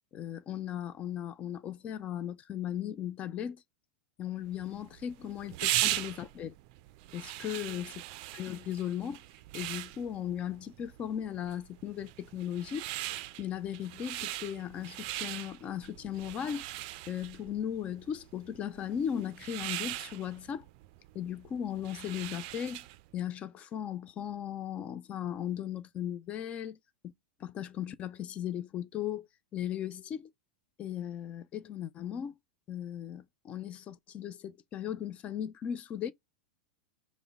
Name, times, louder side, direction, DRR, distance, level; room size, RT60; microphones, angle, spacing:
voice 1, 0.1-3.6 4.2-6.5 7.1-7.9 8.3-9.2 9.5-12.8 13.4-16.7 17.1-20.6 21.1-22.8 23.1-26.8 27.4-29.3 29.5-30.3 30.8-32.4 32.7-36.1, left 10 dB, 30° left, 0.4 m, -37 dB
sound 1, 4.5-23.1, right 15 dB, 45° right, 0.4 m, -39 dB
4.8 x 2.1 x 4.6 m
figure-of-eight pair, 90°, 4 cm